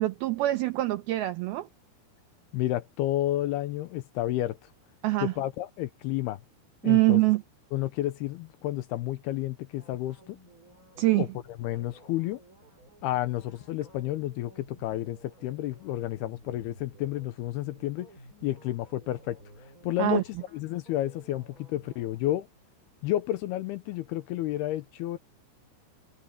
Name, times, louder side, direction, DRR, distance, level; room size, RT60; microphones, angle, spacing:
voice 1, 0.0-1.7 5.0-5.3 6.8-7.4 11.0-11.3 20.0-20.2, right 18 dB, 85° right, 2.2 m, -24 dB
voice 2, 2.5-4.6 5.2-6.4 6.8-7.2 7.7-10.4 11.2-11.3 11.6-12.4 13.0-18.1 18.4-19.4 19.8-20.2 20.5-22.5 23.0-25.2, left 14 dB, 80° left, 2.5 m, -31 dB
sound 1, 9.8-22.2, right 1 dB, 20° right, 6.2 m, -54 dB
omnidirectional pair, 5.2 m